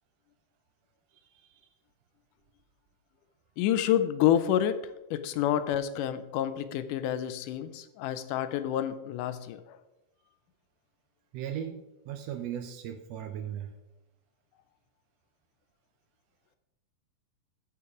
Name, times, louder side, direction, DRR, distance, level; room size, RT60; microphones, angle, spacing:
voice 1, 1.1-1.7 11.3-13.8, right 9 dB, 85° right, 7 dB, 1.4 m, -38 dB
voice 2, 3.6-4.8 5.1-9.6, left 11 dB, 85° left, 12 dB, 2.2 m, -28 dB
13.5 x 4.5 x 4.9 m, 0.98 s
omnidirectional pair, 3.6 m